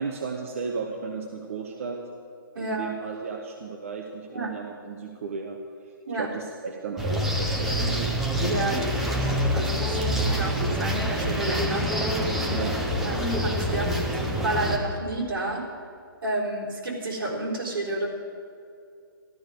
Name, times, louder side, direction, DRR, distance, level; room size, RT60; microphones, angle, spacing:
voice 1, 0.0-2.0 2.6-5.6 6.1-8.1 12.5-13.0, right 5 dB, 35° right, 1 dB, 0.9 m, -34 dB
voice 2, 2.5-2.9 4.3-4.5 6.1-6.3 8.4-11.9 13.0-15.7 16.2-18.1, right 2 dB, 65° right, -2 dB, 4.2 m, -31 dB
sound 1, 7.0-14.8, equal, ahead, 0.4 m, -26 dB
13.5 x 13.0 x 5.2 m, 2.4 s
hypercardioid pair, 175°, 12 cm